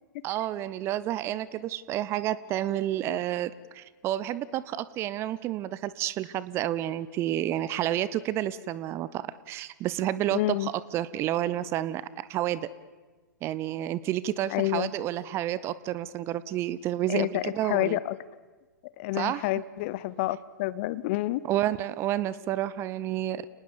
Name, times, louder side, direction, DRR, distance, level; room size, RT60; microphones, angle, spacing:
voice 1, 0.2-12.7 13.4-18.0 19.2-19.4 21.4-23.5, right 12 dB, 25° right, 17 dB, 0.7 m, -30 dB
voice 2, 10.3-10.7 14.5-14.9 17.1-18.2 19.0-21.4, left 17 dB, 35° left, 18 dB, 0.8 m, -29 dB
29.5 x 19.0 x 7.1 m, 1.3 s
figure-of-eight pair, 110°, 11 cm